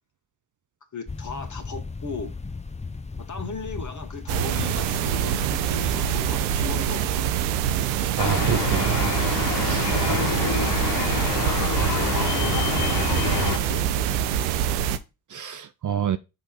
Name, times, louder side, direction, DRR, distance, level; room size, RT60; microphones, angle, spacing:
voice 1, 0.9-2.3 3.2-7.3 9.7-10.7 11.7-12.6 13.2-13.9, left 3 dB, 35° left, 2.0 m, -35 dB
sound 1, 1.1-6.6, left 4 dB, 15° left, 0.7 m, -36 dB
sound 2, 4.3-15.0, right 10 dB, 85° right, 0.6 m, -25 dB
sound 3, 8.2-13.6, left 4 dB, 85° left, 1.1 m, -26 dB
voice 2, 8.2-9.1 9.6-10.2 15.3-16.2, right 9 dB, 40° right, 0.6 m, -28 dB
6.2 x 3.3 x 5.3 m
hypercardioid pair, 40°, 48 cm